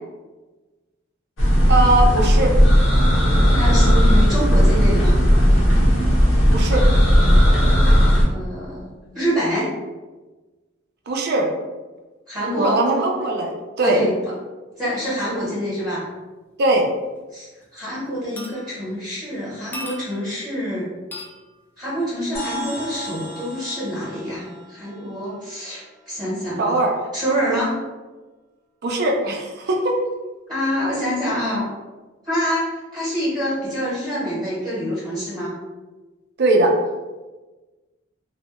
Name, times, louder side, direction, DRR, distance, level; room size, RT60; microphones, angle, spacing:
sound 1, 1.4-8.2, equal, 80° left, 0.7 m, -15 dB
voice 1, 1.7-2.5 6.5-6.8 11.1-11.5 12.6-13.5 13.8-14.0 16.6-16.8 26.6-26.9 28.8-30.0 36.4-36.7, right 2 dB, 55° right, 1 dB, 0.4 m, -20 dB
voice 2, 3.5-5.2 8.2-9.7 12.3-12.8 13.8-14.1 14.7-16.0 17.3-17.5 17.7-20.9 21.8-26.8 27.1-27.8 30.5-31.7 32.2-35.6, equal, 25° right, -10 dB, 0.9 m, -26 dB
sound 2, 17.2-17.3 17.6-17.9 18.4-19.0 19.7-20.4 21.1-21.5 22.8-23.0 24.0-24.1, equal, 10° left, 0.3 m, -37 dB
sound 3, 22.3-26.1, right 1 dB, 45° left, 0.6 m, -36 dB
2.2 x 2.0 x 2.8 m, 1.2 s
head